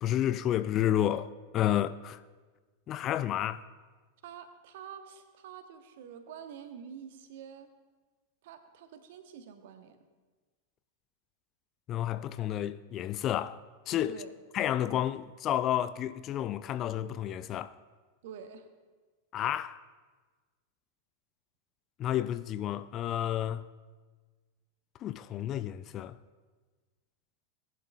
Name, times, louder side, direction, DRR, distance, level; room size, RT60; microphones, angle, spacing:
voice 1, 0.0-2.2 2.9-3.6 11.9-13.6 13.9-14.2 14.5-17.8 19.3-19.8 22.0-23.7 25.0-26.2, left 11 dB, 35° left, 0.4 m, -31 dB
voice 2, 4.2-7.7 8.4-10.0 14.1-14.3 18.2-18.7, right 7 dB, 55° right, 1.1 m, -47 dB
19.5 x 11.0 x 2.4 m
figure-of-eight pair, 90°, 0 cm